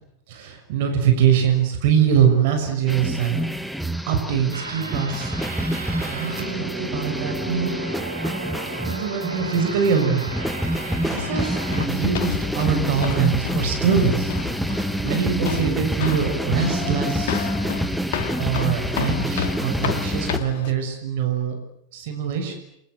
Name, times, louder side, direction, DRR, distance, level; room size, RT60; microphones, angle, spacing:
voice 1, 0.3-3.4 4.1-5.3 6.0-7.8 8.9-10.3 10.7-14.3 14.7-17.5 18.4-21.6 21.9-22.5, right 7 dB, 50° right, 5 dB, 6.5 m, -23 dB
sound 1, 2.9-20.4, equal, ahead, 1.5 m, -27 dB
sound 2, 4.5-11.9, right 3 dB, 80° right, 4.5 m, -35 dB
sound 3, 10.9-20.7, left 9 dB, 50° left, 2.2 m, -31 dB
29.5 x 24.5 x 8.1 m, 0.80 s
figure-of-eight pair, 90°, 0 cm